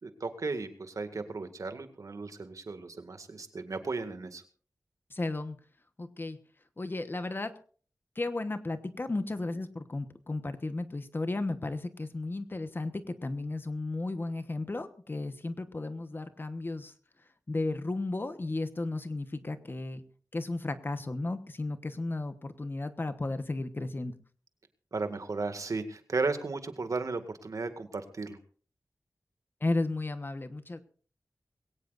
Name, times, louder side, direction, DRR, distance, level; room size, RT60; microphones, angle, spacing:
voice 1, 0.0-4.4 24.9-28.4, right 3 dB, 65° right, 8 dB, 2.0 m, -35 dB
voice 2, 5.1-5.6 6.0-6.4 6.8-7.5 8.1-16.9 17.5-20.0 20.3-24.1 29.6-30.8, left 2 dB, 35° left, 10 dB, 1.2 m, -34 dB
21.5 x 17.5 x 2.6 m, 0.43 s
wide cardioid pair, 105°, 6 cm